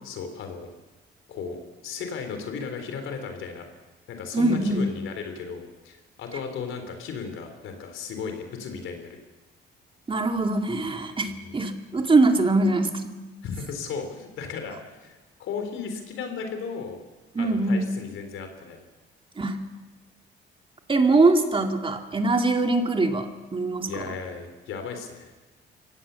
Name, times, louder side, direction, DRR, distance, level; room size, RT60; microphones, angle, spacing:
voice 1, 0.0-0.7 1.3-1.6 1.8-3.7 4.1-9.2 11.3-11.6 13.4-17.0 17.4-18.8 23.9-25.3, left 5 dB, 85° left, 6 dB, 3.8 m, -35 dB
voice 2, 4.3-4.8 10.1-13.2 17.3-17.9 19.4-19.6 20.9-24.1, right 2 dB, 25° right, 4 dB, 2.3 m, -23 dB
24.0 x 17.0 x 7.0 m, 1.2 s
cardioid pair, 90°, 20 cm